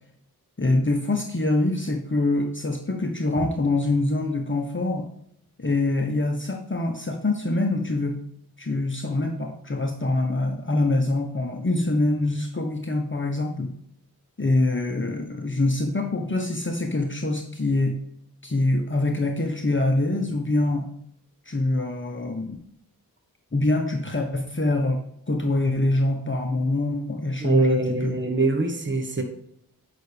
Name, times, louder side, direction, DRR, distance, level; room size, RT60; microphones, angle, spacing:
voice 1, 0.6-5.1 5.6-8.2 8.6-13.7 14.4-18.0 18.4-20.8 21.5-22.6 23.5-25.0 25.3-28.1, left 2 dB, 30° left, 2 dB, 1.1 m, -24 dB
voice 2, 27.4-29.2, right 2 dB, 30° right, 4 dB, 1.4 m, -23 dB
9.1 x 5.9 x 3.4 m, 0.73 s
cardioid pair, 50°, 37 cm